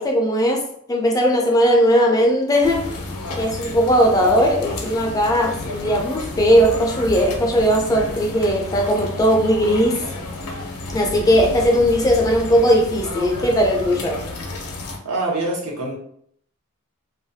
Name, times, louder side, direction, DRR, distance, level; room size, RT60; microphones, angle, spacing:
voice 1, 0.0-2.8 3.4-10.0 10.9-14.2, equal, 15° left, 1 dB, 0.3 m, -18 dB
sound 1, 2.6-15.0, left 2 dB, 80° left, 0.5 m, -31 dB
voice 2, 15.0-15.9, right 2 dB, 75° right, -2 dB, 0.8 m, -24 dB
2.3 x 2.2 x 2.6 m, 0.67 s
head